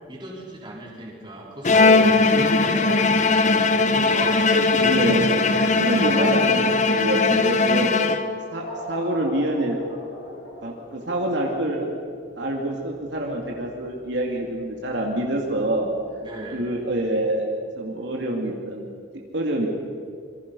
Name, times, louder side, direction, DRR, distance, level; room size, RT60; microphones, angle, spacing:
voice 1, 0.1-3.6 3.9-4.4 5.9-6.3 16.2-16.6, right 1 dB, 25° right, -3 dB, 3.8 m, -35 dB
Bowed string instrument, 1.6-8.6, left 3 dB, 40° left, 1.1 m, -19 dB
voice 2, 4.5-5.3 5.8-7.9 8.5-9.8 10.6-11.9 12.4-15.9 16.5-17.5 17.8-18.9 19.3-19.7, right 1 dB, 65° right, -1 dB, 2.6 m, -26 dB
sound 1, 8.6-17.0, equal, 70° left, 7.7 m, -42 dB
27.0 x 24.0 x 5.5 m, 2.2 s
head